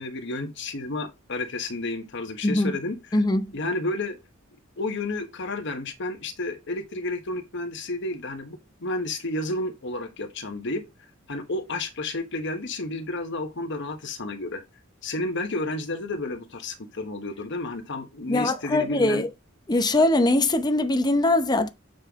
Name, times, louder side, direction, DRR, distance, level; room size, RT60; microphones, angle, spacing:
voice 1, 0.0-3.2 3.5-4.2 4.8-10.8 11.3-14.6 15.0-19.3, left 2 dB, 60° left, 1.2 m, -31 dB
voice 2, 3.1-3.6 18.3-19.3 19.7-21.7, left 2 dB, 20° left, 0.8 m, -22 dB
7.7 x 5.5 x 3.6 m
head